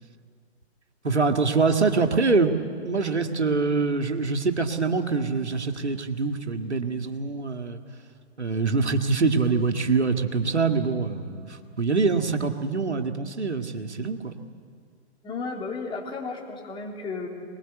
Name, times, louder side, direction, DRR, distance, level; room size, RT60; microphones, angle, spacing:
voice 1, 1.0-2.5 2.8-7.8 8.4-14.3, right 4 dB, 85° right, 5 dB, 2.0 m, -24 dB
voice 2, 15.2-17.3, left 4 dB, 15° left, 0 dB, 3.6 m, -33 dB
23.5 x 20.5 x 8.3 m, 2.2 s
figure-of-eight pair, 125°, 33 cm